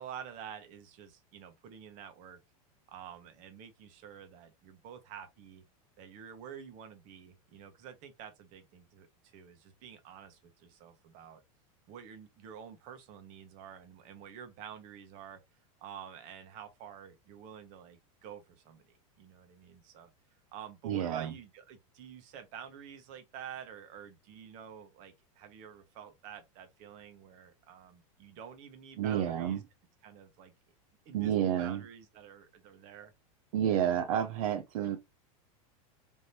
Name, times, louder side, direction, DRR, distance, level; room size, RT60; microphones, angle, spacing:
voice 1, 0.0-2.4 2.9-5.6 6.0-9.1 9.3-11.4 11.9-15.4 15.8-20.1 20.5-29.6 30.0-30.5 31.0-33.1, right 8 dB, 40° right, 1.2 m, -49 dB
voice 2, 20.8-21.3 29.0-29.6 31.1-31.8 33.5-35.0, right 10 dB, 75° right, 0.7 m, -30 dB
3.5 x 3.0 x 4.3 m
supercardioid pair, 155°, 18 cm